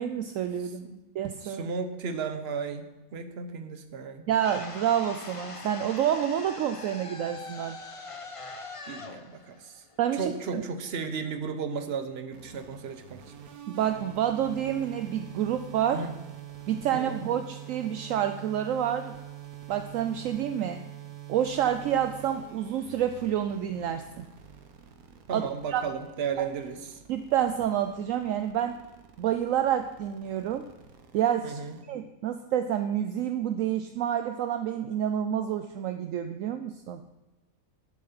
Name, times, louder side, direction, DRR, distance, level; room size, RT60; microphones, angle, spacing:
voice 1, 0.0-0.9 1.1-1.7 4.3-7.8 10.0-10.6 13.7-16.1 16.7-19.2 19.7-20.8 21.3-24.3 25.3-25.8 26.4-26.5 27.1-28.8 29.2-30.7 31.1-31.6 31.9-37.0, right 10 dB, 70° right, 8 dB, 0.9 m, -28 dB
voice 2, 1.4-4.2 8.9-9.8 10.2-13.2 15.9-16.1 16.9-17.3 25.3-27.0 31.4-31.8, right 5 dB, 50° right, 8 dB, 1.1 m, -34 dB
sound 1, 4.4-10.5, left 3 dB, 30° left, 0.8 m, -42 dB
sound 2, 12.3-31.8, right 11 dB, 90° right, 1.5 m, -46 dB
11.5 x 7.4 x 5.8 m, 1.0 s
omnidirectional pair, 1.5 m